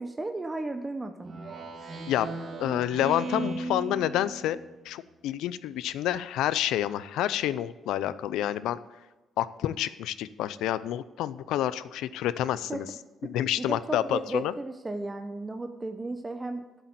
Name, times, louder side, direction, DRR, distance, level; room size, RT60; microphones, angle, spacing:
voice 1, 0.0-1.3 12.4-12.8 13.2-13.3 13.6-16.8, right 2 dB, 20° right, 7 dB, 0.8 m, -35 dB
Speech synthesizer, 1.2-4.8, right 2 dB, 50° right, 1.5 m, -36 dB
voice 2, 2.6-8.8 9.4-12.9 13.2-14.5, left 12 dB, 90° left, 16 dB, 0.5 m, -29 dB
8.2 x 8.0 x 7.7 m, 1.1 s
cardioid pair, 90°, 0 cm